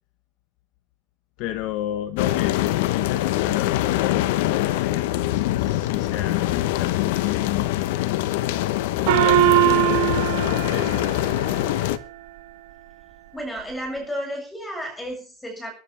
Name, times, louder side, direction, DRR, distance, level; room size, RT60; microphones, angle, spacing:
voice 1, 1.4-7.7 8.9-11.0, left 13 dB, 55° left, 10 dB, 1.3 m, -32 dB
sound 1, 2.2-12.0, left 15 dB, 75° left, 1.1 m, -24 dB
Gong, 9.1-12.0, right 15 dB, 75° right, 1.5 m, -21 dB
voice 2, 13.3-15.7, equal, 5° left, 3 dB, 7.2 m, -32 dB
22.0 x 12.0 x 3.5 m, 0.36 s
supercardioid pair, 150°, 0 cm